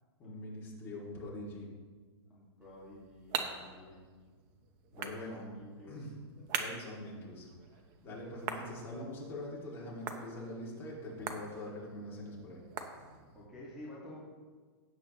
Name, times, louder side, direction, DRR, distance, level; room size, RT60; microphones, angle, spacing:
voice 1, 0.2-1.7 4.9-5.4 5.9-6.1 6.5-7.5 8.0-12.6, left 1 dB, 15° left, -5 dB, 2.7 m, -43 dB
voice 2, 2.3-4.1 4.9-6.0 6.4-6.5 8.2-8.4 13.3-14.2, left 1 dB, 5° right, -7 dB, 2.0 m, -50 dB
sound 1, 2.6-13.5, right 6 dB, 30° right, 0.9 m, -44 dB
16.5 x 8.0 x 3.2 m, 1.5 s
hypercardioid pair, 160°, 14 cm